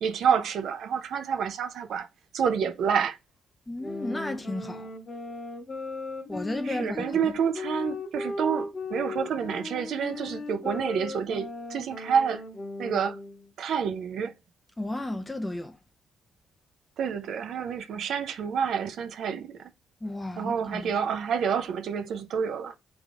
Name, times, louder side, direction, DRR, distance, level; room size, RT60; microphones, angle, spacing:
voice 1, 0.0-2.1 2.3-3.2 6.6-12.4 12.8-13.2 13.6-14.3 17.0-19.7 20.4-22.8, right 7 dB, 70° right, 0.5 m, -28 dB
voice 2, 3.7-4.9 6.3-7.0 7.2-7.3 14.8-15.8 20.0-20.9, left 1 dB, 15° left, 0.5 m, -33 dB
sound 1, 3.8-13.5, left 3 dB, 35° left, 1.1 m, -37 dB
3.4 x 3.4 x 3.7 m
cardioid pair, 90°, 0 cm